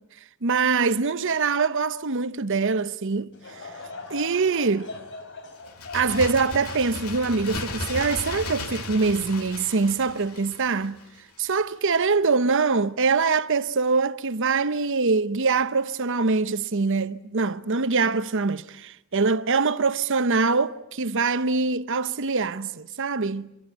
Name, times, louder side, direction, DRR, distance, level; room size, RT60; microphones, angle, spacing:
voice 1, 0.4-3.3 4.1-4.9 5.9-11.0 11.4-23.5, right 4 dB, 60° right, 0.9 m, -24 dB
Laughter / Crowd, 3.3-8.8 9.3-9.4 10.3-10.5, left 3 dB, 60° left, 4.0 m, -42 dB
Bird, 5.6-11.2 11.5-11.6, left 3 dB, 90° left, 2.5 m, -35 dB
26.0 x 23.0 x 9.0 m
head